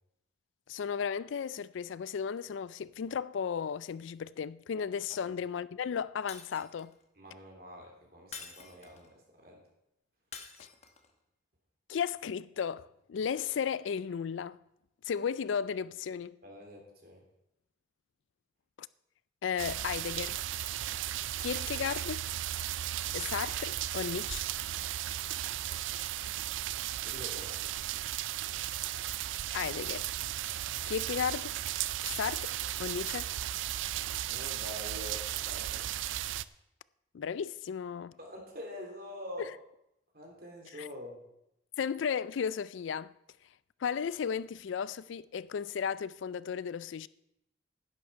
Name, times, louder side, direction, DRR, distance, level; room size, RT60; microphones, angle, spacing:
voice 1, 0.7-6.9 10.6-10.7 11.9-14.6 15.0-16.4 19.4-20.4 21.4-22.2 23.1-24.4 29.5-30.1 30.8-31.6 32.0-32.5 32.8-33.3 37.1-38.1 40.8-40.9 41.8-43.1 43.8-47.1, left 7 dB, 80° left, 0.4 m, -34 dB
Shatter, 6.3-7.0 8.3-9.1 10.3-11.1, left 6 dB, 35° left, 1.0 m, -47 dB
voice 2, 7.2-9.6 16.4-17.2 27.1-27.6 34.2-35.8 38.2-39.5 40.1-41.2, left 1 dB, 50° right, 3.1 m, -45 dB
sound 1, 19.6-36.4, right 13 dB, 80° right, 0.4 m, -35 dB
11.0 x 9.4 x 5.5 m
head